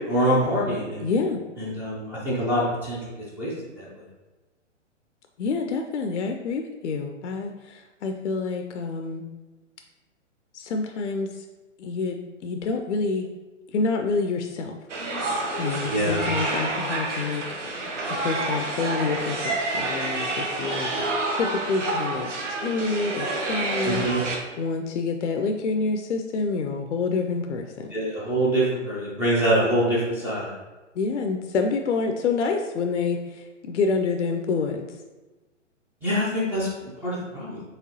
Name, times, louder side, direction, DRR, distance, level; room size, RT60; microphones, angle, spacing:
voice 1, 0.1-1.1 1.6-3.0 3.4-3.9 15.8-16.3 23.8-24.2 27.9-30.5 36.0-37.6, right 1 dB, 5° right, -8 dB, 0.4 m, -25 dB
voice 2, 1.0-1.4 5.4-9.2 10.5-11.4 11.8-13.3 13.7-14.7 15.6-17.4 18.2-20.9 21.3-24.1 24.6-27.9 31.0-34.9, left 4 dB, 65° left, 4 dB, 0.5 m, -27 dB
sound 1, 14.9-24.4, right 2 dB, 70° right, 1.0 m, -28 dB
4.8 x 3.2 x 2.9 m, 1.2 s
figure-of-eight pair, 125°, 37 cm